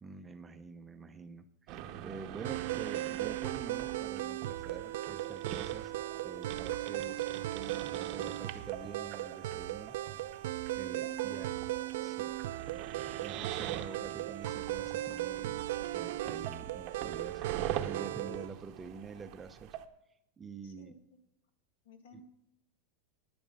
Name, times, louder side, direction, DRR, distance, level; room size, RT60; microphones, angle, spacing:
voice 1, 0.0-5.9 6.2-7.3 7.5-10.0 10.8-11.5 12.0-12.3 13.2-17.4 17.8-19.8 20.4-20.9 22.1-22.2, right 5 dB, 15° right, 9 dB, 0.6 m, -47 dB
sound 1, 1.7-19.9, right 11 dB, 40° right, 0.8 m, -44 dB
sound 2, 2.4-18.5, right 15 dB, 70° right, 0.5 m, -37 dB
voice 2, 11.1-11.7 12.0-12.2 20.6-21.2 21.8-22.2, left 3 dB, 75° left, 6 dB, 2.0 m, -56 dB
11.0 x 9.7 x 5.3 m, 0.79 s
supercardioid pair, 160°, 0 cm